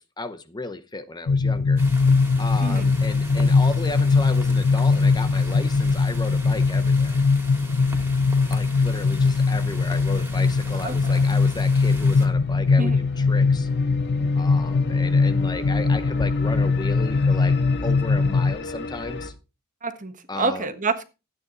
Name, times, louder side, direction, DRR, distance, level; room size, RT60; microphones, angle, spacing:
voice 1, 0.0-1.8 2.4-7.2 8.5-13.7 14.4-17.6 17.8-19.3 20.3-20.7, left 2 dB, 20° left, 0.8 m, -34 dB
sound 1, 1.3-18.5, left 4 dB, 85° left, 0.6 m, -21 dB
sound 2, 1.8-12.3, right 1 dB, 10° right, 2.9 m, -41 dB
sound 3, 10.2-19.3, left 2 dB, 55° left, 2.2 m, -35 dB
voice 2, 10.8-11.2 12.8-13.0 19.8-21.1, right 3 dB, 35° right, 1.5 m, -28 dB
13.5 x 9.3 x 3.9 m
head